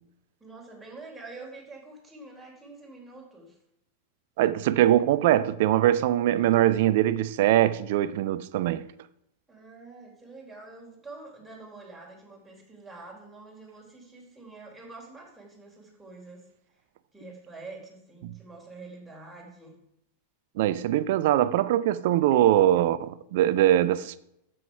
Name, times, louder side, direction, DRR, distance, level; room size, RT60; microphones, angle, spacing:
voice 1, 0.4-3.6 9.5-16.5 17.1-19.8, right 3 dB, 5° right, 3.8 m, -46 dB
voice 2, 4.4-8.9 18.2-18.3 20.6-24.2, right 12 dB, 50° right, 0.6 m, -22 dB
9.9 x 7.8 x 4.7 m
figure-of-eight pair, 90°, 0 cm